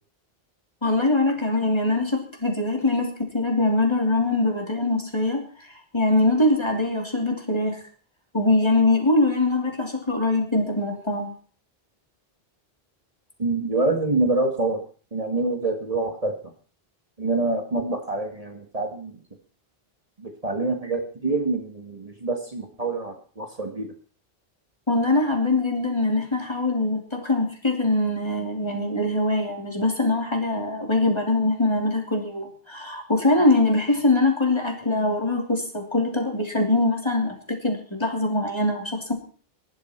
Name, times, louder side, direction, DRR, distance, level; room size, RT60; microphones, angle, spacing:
voice 1, 0.8-5.4 5.9-7.8 8.3-11.3 24.9-37.4 37.6-39.1, left 2 dB, 25° left, 1 dB, 3.2 m, -23 dB
voice 2, 13.4-14.8 15.1-16.4 17.2-19.2 20.2-23.9, right 2 dB, 35° right, 4 dB, 1.8 m, -26 dB
18.0 x 11.5 x 4.5 m, 0.41 s
omnidirectional pair, 1.0 m